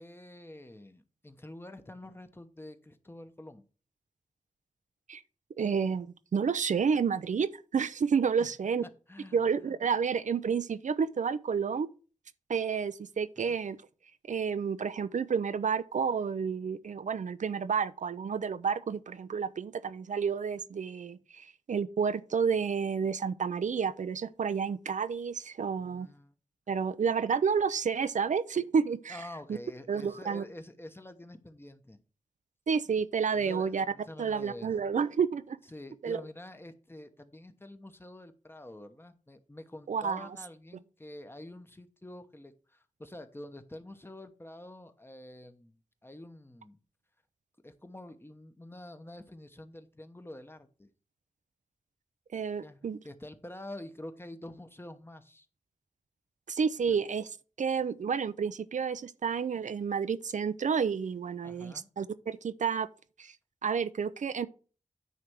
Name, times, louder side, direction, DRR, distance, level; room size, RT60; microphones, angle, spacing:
voice 1, 0.0-3.6 8.4-8.5 9.1-9.7 13.4-13.6 25.8-26.3 29.1-32.0 33.3-34.8 35.7-45.8 46.0-46.8 47.6-50.9 52.6-55.5 56.9-57.0 61.4-61.9, left 1 dB, 20° left, 1.0 m, -47 dB
voice 2, 5.6-8.8 9.3-11.9 12.5-13.8 14.3-26.1 26.7-29.2 29.9-30.4 32.7-33.9 34.2-35.6 36.0-36.2 39.9-40.3 52.3-53.0 56.5-57.2 57.6-62.9 63.2-63.4 63.6-64.5, right 6 dB, 75° right, 0.5 m, -30 dB
9.4 x 3.4 x 6.1 m
wide cardioid pair, 70°, 13 cm